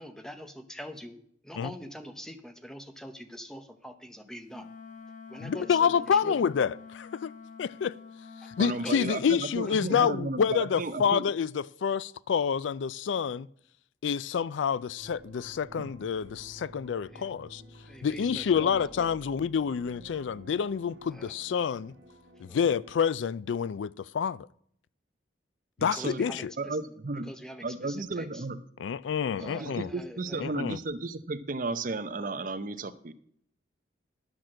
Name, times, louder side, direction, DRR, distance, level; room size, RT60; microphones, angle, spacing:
voice 1, 0.0-4.7 5.3-6.4 8.8-9.0 9.7-9.9 17.1-17.2 17.8-19.2 21.1-21.3 22.5-22.6 25.8-26.8 27.2-28.5 29.4-30.5, equal, 5° left, 0.8 m, -44 dB
Wind instrument woodwind instrument, 4.5-9.3, left 5 dB, 45° left, 0.9 m, -47 dB
voice 2, 5.4-7.3 7.6-8.0 8.4-13.5 14.0-17.6 18.0-21.9 22.4-24.5 25.8-26.5 28.8-29.9 30.4-30.8, left 7 dB, 90° left, 0.4 m, -28 dB
voice 3, 8.6-11.3 15.8-15.9 25.8-26.3 26.6-27.3 27.6-28.6 29.4-33.1, right 3 dB, 45° right, 0.7 m, -34 dB
sound 1, 15.0-23.0, right 1 dB, 85° right, 1.4 m, -51 dB
11.5 x 6.0 x 6.3 m
head